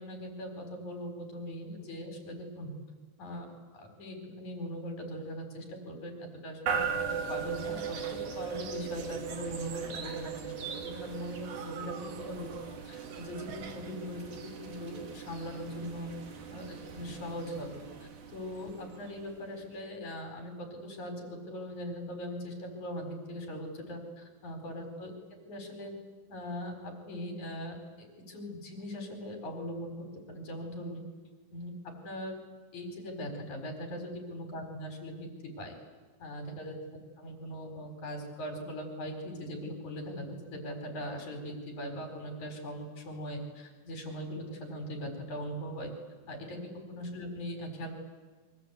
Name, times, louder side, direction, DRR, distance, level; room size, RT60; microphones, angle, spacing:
voice 1, 0.0-2.7 3.2-3.5 3.7-7.0 7.3-12.5 12.8-16.1 16.5-25.1 25.5-25.9 26.3-29.9 30.3-31.0 31.5-31.7 32.0-32.4 32.7-35.3 35.6-35.7 36.2-36.8 37.2-45.9 46.3-48.0, equal, 55° left, 4 dB, 5.8 m, -40 dB
sound 1, 6.7-19.7, right 7 dB, 85° right, 4.5 m, -39 dB
Laughter, 7.3-14.1, right 6 dB, 55° right, 2.3 m, -48 dB
28.5 x 24.0 x 8.3 m, 1.3 s
omnidirectional pair, 4.1 m